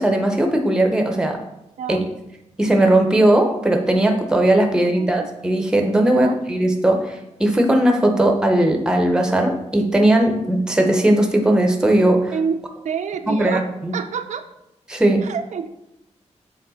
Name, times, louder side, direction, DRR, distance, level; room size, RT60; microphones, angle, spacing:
voice 1, 0.0-1.4 1.9-2.0 2.6-12.3 13.3-14.0 14.9-15.3, right 1 dB, 5° right, 3 dB, 0.6 m, -18 dB
voice 2, 1.8-2.1 5.0-5.3 6.0-6.4 12.3-12.6 12.8-13.7 13.9-14.4 15.2-15.7, right 6 dB, 85° right, 7 dB, 0.4 m, -27 dB
7.0 x 3.4 x 3.9 m, 0.87 s
wide cardioid pair, 160°, 12 cm